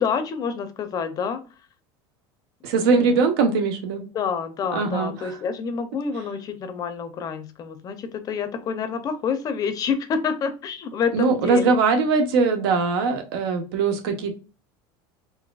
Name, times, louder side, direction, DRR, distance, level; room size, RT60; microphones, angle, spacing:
voice 1, 0.0-1.4 2.9-3.1 4.1-11.7, left 6 dB, 30° left, 9 dB, 0.5 m, -28 dB
voice 2, 2.6-4.0 4.7-5.3 11.1-14.3, right 4 dB, 85° right, 6 dB, 0.9 m, -21 dB
4.1 x 2.5 x 2.3 m, 0.33 s
supercardioid pair, 145°, 12 cm